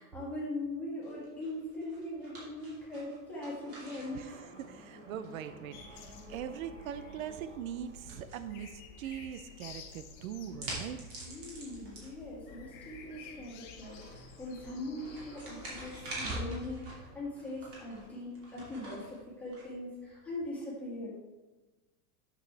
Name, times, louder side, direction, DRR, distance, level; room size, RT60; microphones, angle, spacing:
voice 1, 0.0-4.4 11.2-21.1, left 1 dB, 5° left, -7 dB, 1.9 m, -41 dB
sound 1, 1.0-20.3, right 1 dB, 30° right, 2.5 m, -47 dB
sound 2, 3.6-19.4, right 1 dB, 50° right, 1.7 m, -56 dB
voice 2, 4.6-11.0, right 9 dB, 75° right, 12 dB, 0.6 m, -41 dB
sound 3, 5.7-16.0, left 5 dB, 35° left, 0.8 m, -52 dB
9.1 x 6.2 x 3.3 m, 1.1 s
supercardioid pair, 170°, 41 cm